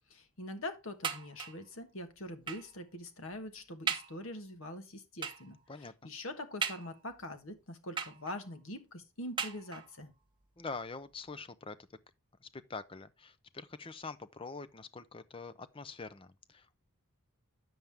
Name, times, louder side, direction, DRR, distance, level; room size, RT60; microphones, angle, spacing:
voice 1, 0.1-10.1, left 1 dB, 65° left, 1.4 m, -44 dB
sound 1, 1.0-1.7 2.5-2.8 3.3-3.4 3.9-4.2 5.2-5.6 6.6-7.2 8.0-8.6 9.4-10.0 10.9-11.0 11.3-11.4, right 6 dB, 20° right, 0.8 m, -38 dB
voice 2, 5.7-6.1 10.6-11.8 12.4-16.8, left 4 dB, 25° left, 0.5 m, -45 dB
9.3 x 7.3 x 3.4 m
head